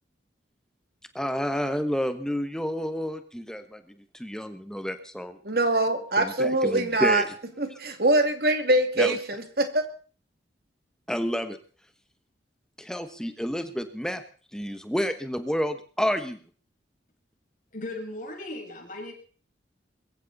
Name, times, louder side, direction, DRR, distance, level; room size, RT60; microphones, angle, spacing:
voice 1, 1.1-5.4 6.2-7.3 9.0-9.1 11.1-11.6 12.8-14.2 14.5-16.4, equal, 5° left, 9 dB, 1.2 m, -30 dB
voice 2, 5.4-7.3 7.6-9.9, right 2 dB, 55° right, 7 dB, 2.5 m, -23 dB
voice 3, 17.7-19.1, left 2 dB, 45° left, 1 dB, 6.1 m, -37 dB
22.0 x 15.0 x 4.1 m, 0.41 s
head